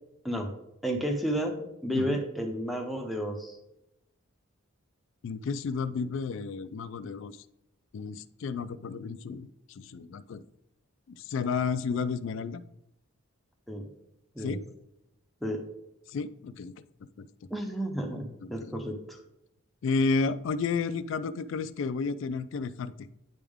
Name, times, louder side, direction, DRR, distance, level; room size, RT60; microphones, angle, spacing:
voice 1, 0.8-1.6 1.8-3.6 13.7-13.8 14.4-14.6 15.4-15.6 17.5-19.2, equal, ahead, 2 dB, 0.6 m, -31 dB
voice 2, 5.2-7.4 7.9-9.5 9.8-10.4 11.1-12.6 14.4-14.7 16.1-16.7 17.2-17.3 18.4-18.8 19.8-23.1, left 4 dB, 60° left, 14 dB, 0.3 m, -32 dB
9.4 x 3.5 x 3.5 m, 0.84 s
head